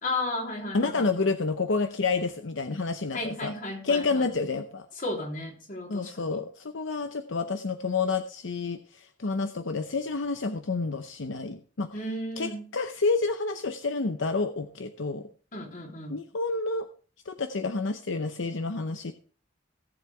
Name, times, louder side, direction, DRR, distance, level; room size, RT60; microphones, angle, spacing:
voice 1, 0.0-1.3 3.1-4.3 5.0-6.4 11.9-12.6 15.5-16.2, left 2 dB, 45° left, 1 dB, 3.1 m, -34 dB
voice 2, 0.7-3.5 3.8-4.9 5.9-11.9 12.4-15.3 16.1-16.9 17.3-19.1, left 3 dB, 75° left, 8 dB, 0.8 m, -29 dB
17.5 x 7.6 x 3.3 m, 0.40 s
head